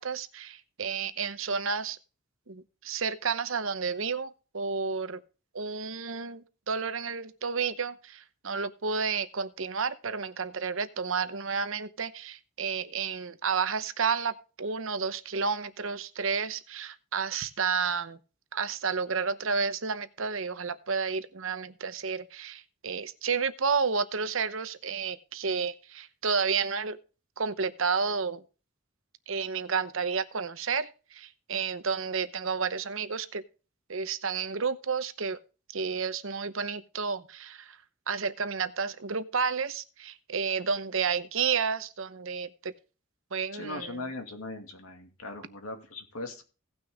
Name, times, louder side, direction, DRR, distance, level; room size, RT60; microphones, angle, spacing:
voice 1, 0.0-2.0 2.5-5.2 5.5-18.2 18.5-27.0 27.4-28.4 29.3-33.4 33.9-35.4 35.7-37.8 38.1-42.7 43.3-44.0, right 5 dB, 70° right, 13 dB, 0.9 m, -31 dB
voice 2, 43.5-46.4, left 2 dB, 85° left, 4 dB, 2.5 m, -39 dB
17.0 x 6.2 x 3.6 m, 0.33 s
head